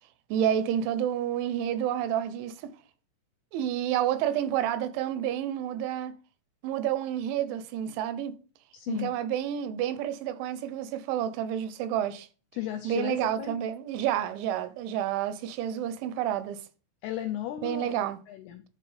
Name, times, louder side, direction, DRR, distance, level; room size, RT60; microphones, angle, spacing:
voice 1, 0.3-2.7 3.5-6.1 6.6-8.3 8.9-12.3 12.8-16.6 17.6-18.2, right 10 dB, 85° right, 3.1 m, -29 dB
voice 2, 8.7-9.1 12.5-13.6 17.0-18.0 18.3-18.6, left 12 dB, 85° left, 2.3 m, -35 dB
10.5 x 4.7 x 3.3 m
omnidirectional pair, 5.3 m